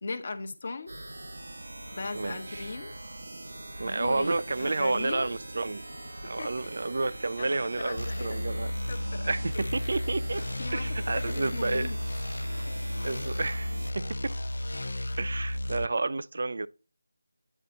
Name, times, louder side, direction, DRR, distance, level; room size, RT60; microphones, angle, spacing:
voice 1, 0.0-0.9 1.9-2.9 3.8-5.3 6.3-6.9 7.3-8.4 8.9-9.6 10.6-12.0, left 3 dB, 40° left, 0.9 m, -38 dB
sound 1, 0.9-13.9, right 1 dB, 65° right, 1.0 m, -43 dB
voice 2, 2.1-2.7 3.8-5.8 6.2-8.7 9.3-10.4 10.7-11.9 13.0-14.4 15.2-16.7, right 3 dB, 50° right, 0.4 m, -30 dB
sound 2, 8.0-15.9, left 1 dB, 60° left, 0.5 m, -33 dB
9.3 x 4.1 x 3.7 m
figure-of-eight pair, 165°, 0 cm